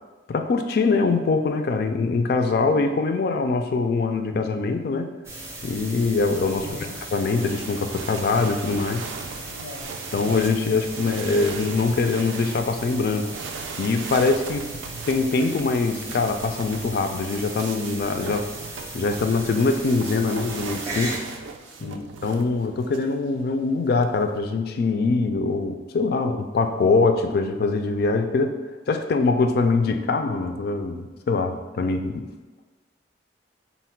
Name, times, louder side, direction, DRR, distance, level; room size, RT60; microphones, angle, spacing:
voice 1, 0.3-5.1 5.6-6.7 7.1-9.0 10.1-13.3 13.8-14.7 15.1-18.5 18.9-21.2 21.8-22.0 22.2-28.5 28.9-32.2, left 3 dB, 55° left, 7 dB, 0.3 m, -23 dB
sound 1, 5.2-21.2, right 2 dB, 15° right, 0.5 m, -37 dB
voice 2, 6.6-7.0 9.5-9.9 21.7-22.0, left 3 dB, 90° left, 0 dB, 0.7 m, -41 dB
sound 2, 6.8-23.1 23.9-24.5, right 5 dB, 85° right, 0.3 m, -39 dB
4.0 x 2.1 x 4.4 m, 1.3 s
head